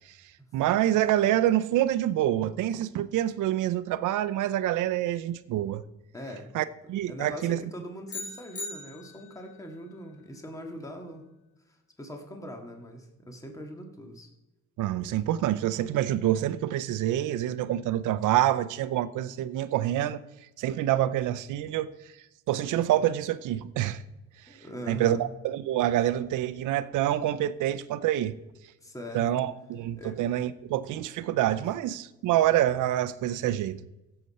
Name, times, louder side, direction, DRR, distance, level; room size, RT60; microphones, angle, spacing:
voice 1, 0.5-5.8 6.5-7.6 14.8-20.2 20.6-21.9 22.5-24.0 24.9-28.4 29.1-33.8, right 12 dB, 85° right, 0.6 m, -26 dB
voice 2, 6.1-6.5 7.1-11.3 12.0-14.3 24.5-25.2 28.8-29.2 30.0-30.2, equal, 10° left, 1.9 m, -41 dB
sound 1, 8.1-9.5, left 2 dB, 50° left, 2.7 m, -39 dB
16.0 x 6.8 x 4.2 m
cardioid pair, 90°, 30 cm